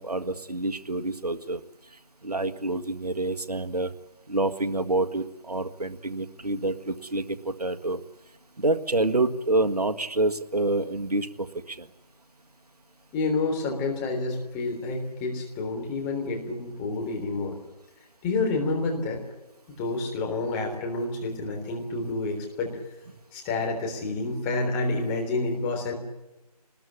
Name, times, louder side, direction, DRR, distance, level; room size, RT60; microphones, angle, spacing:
voice 1, 0.0-1.6 2.2-3.9 4.3-8.0 8.6-11.9, right 2 dB, 70° right, 8 dB, 1.7 m, -27 dB
voice 2, 13.1-17.6 18.2-19.2 19.8-22.7 23.3-25.9, left 3 dB, 10° left, 1 dB, 3.5 m, -29 dB
25.5 x 20.5 x 8.5 m, 0.98 s
figure-of-eight pair, 160°, 20 cm